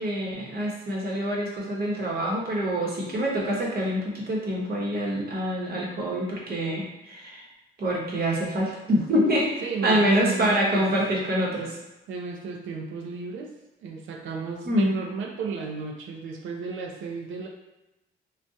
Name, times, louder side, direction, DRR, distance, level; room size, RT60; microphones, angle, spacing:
voice 1, 0.0-7.4 7.8-9.5 9.8-11.7 14.6-14.9, equal, 50° right, -3 dB, 1.1 m, -26 dB
voice 2, 9.6-10.9 12.1-13.5 13.8-17.5, right 4 dB, 80° right, 1 dB, 0.6 m, -33 dB
3.6 x 2.4 x 2.7 m, 0.96 s
cardioid pair, 90°, 20 cm